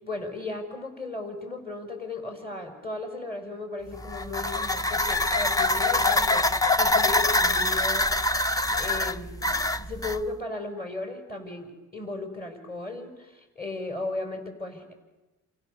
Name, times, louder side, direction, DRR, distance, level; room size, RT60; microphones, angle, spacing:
voice 1, 0.0-8.1 8.7-14.9, left 2 dB, 30° left, 4 dB, 5.8 m, -36 dB
sound 1, 3.9-10.2, left 2 dB, 10° left, 0.8 m, -24 dB
29.5 x 24.5 x 6.9 m, 1.1 s
cardioid pair, 90°, 30 cm